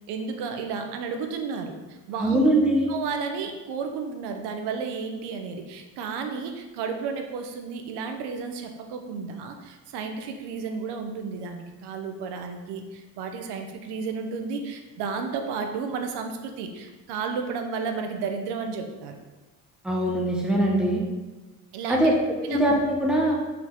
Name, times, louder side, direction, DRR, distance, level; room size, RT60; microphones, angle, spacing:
voice 1, 0.1-2.4 2.9-19.2 21.7-22.1 22.4-22.6, right 5 dB, 85° right, 5 dB, 1.0 m, -32 dB
voice 2, 2.2-2.9 19.8-21.0 21.9-23.4, right 1 dB, ahead, -2 dB, 0.9 m, -22 dB
5.9 x 5.9 x 3.7 m, 1.2 s
cardioid pair, 165°, 40 cm